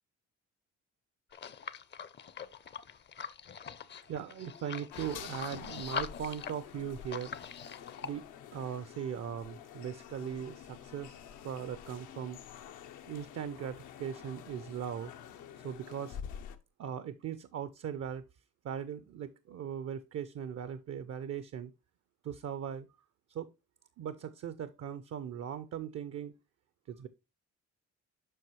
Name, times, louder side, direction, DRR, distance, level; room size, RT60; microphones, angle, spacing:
sound 1, 1.3-8.1, left 7 dB, 35° left, 0.5 m, -43 dB
voice 1, 4.1-7.4 8.0-8.3 8.5-11.2 11.4-12.4 13.1-15.1 15.6-16.2 16.8-18.2 18.6-21.7 22.2-22.9 23.3-23.5 24.0-26.3 26.9-27.1, right 8 dB, 55° right, 0.5 m, -39 dB
sound 2, 4.9-16.6, left 9 dB, 85° left, 0.7 m, -48 dB
7.6 x 5.4 x 3.1 m
cardioid pair, 90°, 30 cm